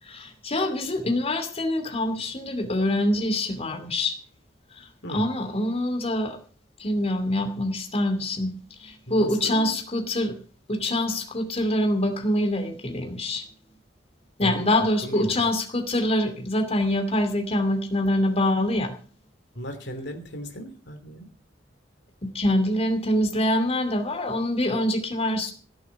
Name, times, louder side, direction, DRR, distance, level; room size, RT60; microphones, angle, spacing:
voice 1, 0.0-4.2 4.7-6.4 6.8-8.5 8.8-10.3 10.7-13.5 14.4-18.9 22.2-25.5, left 1 dB, 35° left, 5 dB, 2.6 m, -25 dB
voice 2, 9.1-9.7 14.4-14.7 15.0-15.3 19.5-21.3, equal, 65° left, 6 dB, 3.0 m, -35 dB
16.5 x 7.3 x 8.7 m, 0.40 s
head